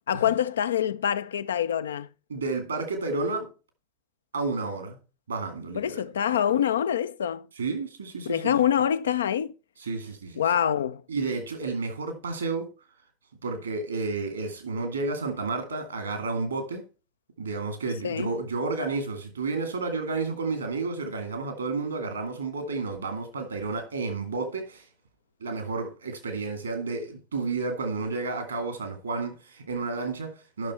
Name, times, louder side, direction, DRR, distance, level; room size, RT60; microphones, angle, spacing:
voice 1, 0.1-2.1 5.8-7.5 8.3-9.5 10.4-11.0 18.0-18.3, left 9 dB, 70° left, 0.4 m, -25 dB
voice 2, 2.3-3.5 4.3-5.0 5.3-6.0 7.6-8.6 9.8-10.4 11.1-12.7 13.4-16.8 17.4-24.8 25.4-30.7, right 3 dB, 80° right, 2.3 m, -31 dB
11.0 x 6.1 x 4.3 m
figure-of-eight pair, 75°, 0 cm